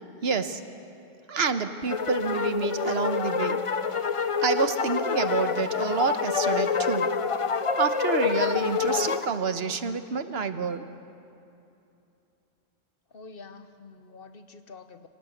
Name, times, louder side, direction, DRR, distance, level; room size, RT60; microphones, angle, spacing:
voice 1, 0.2-0.6 1.3-3.7 4.4-7.1 7.8-10.8, right 5 dB, 80° right, 10 dB, 1.2 m, -28 dB
sound 1, 1.9-9.3, left 6 dB, 40° left, 0.6 m, -27 dB
voice 2, 13.1-15.1, left 4 dB, 65° left, 9 dB, 1.3 m, -47 dB
25.0 x 17.5 x 8.0 m, 2.8 s
omnidirectional pair, 1.0 m